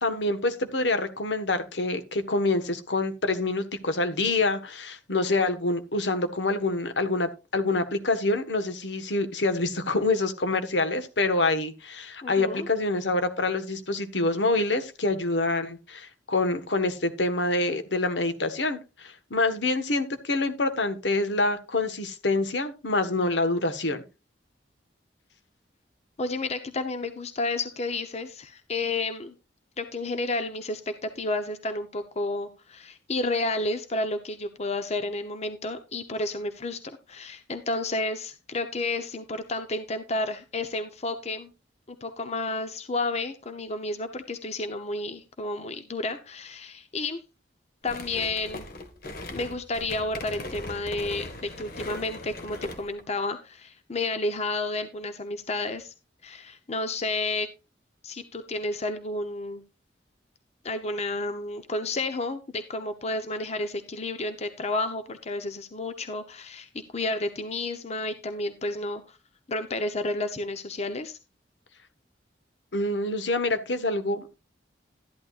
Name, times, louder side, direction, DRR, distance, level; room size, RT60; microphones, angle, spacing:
voice 1, 0.0-24.0 72.7-74.3, left 2 dB, 75° left, 9 dB, 1.5 m, -26 dB
voice 2, 12.2-12.7 26.2-29.3 29.8-41.5 41.9-47.2 47.8-48.7 49.3-55.9 56.2-57.5 58.0-59.6 60.6-69.2 69.5-71.2, left 2 dB, 35° left, 9 dB, 0.9 m, -31 dB
sound 1, 47.8-53.0, left 2 dB, 55° left, 1.7 m, -39 dB
13.0 x 11.0 x 2.5 m, 0.29 s
head